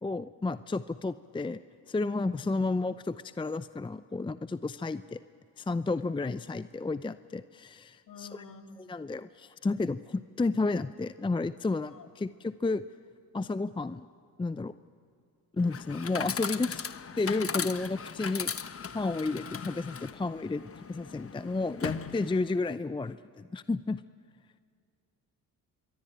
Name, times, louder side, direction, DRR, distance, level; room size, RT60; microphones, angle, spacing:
voice 1, 0.0-1.6 1.9-5.2 5.6-8.4 8.8-12.8 13.3-14.1 14.4-14.7 15.5-16.9 17.1-18.5 18.9-24.0, left 3 dB, 10° left, 14 dB, 0.6 m, -32 dB
voice 2, 8.1-8.8 11.9-12.1, left 4 dB, 50° left, 4 dB, 2.6 m, -48 dB
Chatter / Coin (dropping), 15.6-22.6, left 6 dB, 35° left, 1.2 m, -38 dB
26.5 x 22.0 x 8.9 m, 2.2 s
hypercardioid pair, 55°, 40 cm